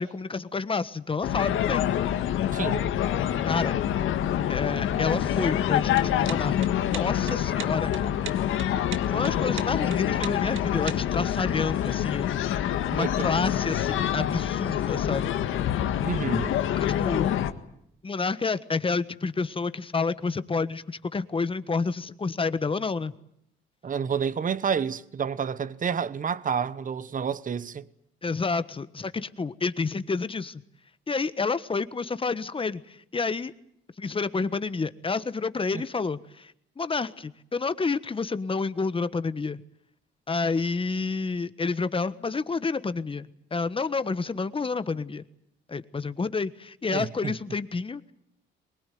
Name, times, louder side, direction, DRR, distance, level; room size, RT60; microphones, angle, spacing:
voice 1, 0.0-1.8 3.4-3.7 4.5-8.1 9.1-12.4 12.9-15.4 16.8-17.3 18.0-23.1 28.2-30.6 31.1-33.5 34.0-39.6 40.3-45.2 45.7-48.1, left 4 dB, 25° left, 1.4 m, -29 dB
sound 1, 1.2-17.5, left 10 dB, 85° left, 1.8 m, -26 dB
voice 2, 2.5-2.8 12.9-13.1 16.0-16.5 23.8-27.9 35.7-35.8 46.9-47.3, right 7 dB, 40° right, 1.1 m, -29 dB
sound 2, 5.9-11.2, right 10 dB, 80° right, 1.8 m, -39 dB
23.5 x 20.5 x 9.4 m
cardioid pair, 90°, 20 cm